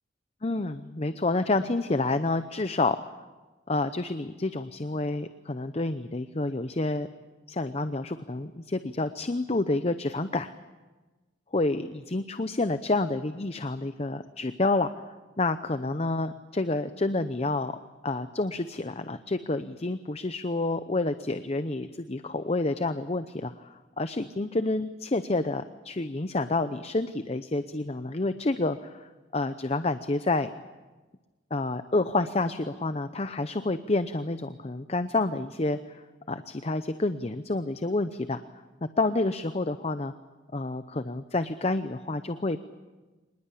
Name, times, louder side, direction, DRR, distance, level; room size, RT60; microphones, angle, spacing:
voice 1, 0.4-3.1 3.7-7.1 7.5-10.5 11.5-17.7 18.0-30.5 31.5-38.4 39.0-40.1 40.5-42.6, left 2 dB, 35° left, 11 dB, 0.7 m, -29 dB
26.0 x 20.0 x 8.5 m, 1.2 s
head